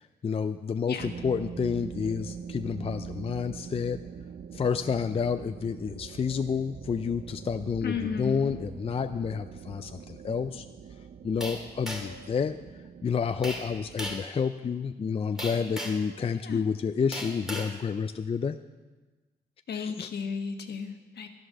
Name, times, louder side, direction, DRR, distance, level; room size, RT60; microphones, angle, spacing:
voice 1, 0.2-4.0 4.5-10.7 11.2-12.6 13.0-18.6 19.7-20.1, left 6 dB, 35° left, 9 dB, 0.4 m, -29 dB
sound 1, 1.0-14.1, right 7 dB, 65° right, 0.7 m, -43 dB
voice 2, 7.8-8.6 16.3-16.7 19.7-21.3, left 6 dB, 70° left, 6 dB, 1.4 m, -34 dB
sound 2, 11.4-12.2 13.4-13.7 14.0-14.3 15.4-16.1 17.1-17.7, equal, 5° right, 2.2 m, -36 dB
12.5 x 11.5 x 6.5 m, 1.3 s
wide cardioid pair, 125°, 18 cm